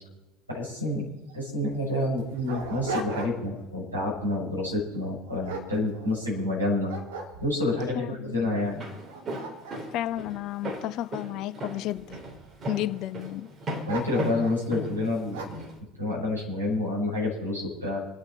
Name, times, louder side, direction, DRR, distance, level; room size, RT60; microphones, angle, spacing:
voice 1, 0.5-1.1 1.3-6.9 7.4-8.8 13.9-15.6 16.0-18.0, left 2 dB, 90° right, 6.7 m, -28 dB
Dog, 1.3-1.4 2.0-3.6 4.0-4.3 4.9-6.4 6.9-7.8 8.4-8.5 8.9-11.3 11.9-12.6 13.8-14.6 15.3-15.7, right 3 dB, 65° right, 2.7 m, -38 dB
voice 2, 7.9-8.4 9.9-12.2 12.7-13.5, left 14 dB, 50° left, 0.6 m, -32 dB
Walk footsteps, 8.6-15.7, equal, 30° right, 3.9 m, -36 dB
28.0 x 9.7 x 4.4 m
figure-of-eight pair, 70°, 0 cm